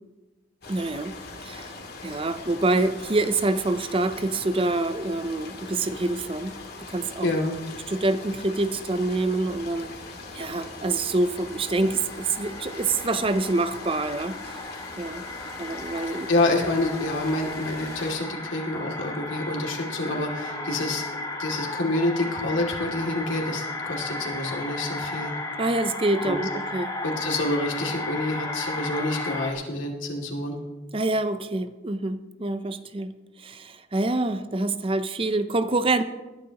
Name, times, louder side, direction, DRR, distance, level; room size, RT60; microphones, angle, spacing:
sound 1, 0.6-18.1, left 3 dB, 55° left, 2.2 m, -41 dB
voice 1, 0.7-1.1 1.4-1.7 2.0-6.6 6.9-7.3 7.9-9.9 10.3-14.6 15.0-15.2 15.6-16.3 25.6-26.9 30.9-36.0, right 2 dB, 30° right, 11 dB, 0.6 m, -26 dB
voice 2, 7.2-7.6 16.1-21.0 21.4-25.3 26.2-26.4 27.0-30.6, left 2 dB, 90° left, 0 dB, 2.5 m, -27 dB
sound 2, 11.4-29.5, left 2 dB, 20° left, 1.1 m, -35 dB
20.5 x 11.0 x 3.0 m, 1.1 s
head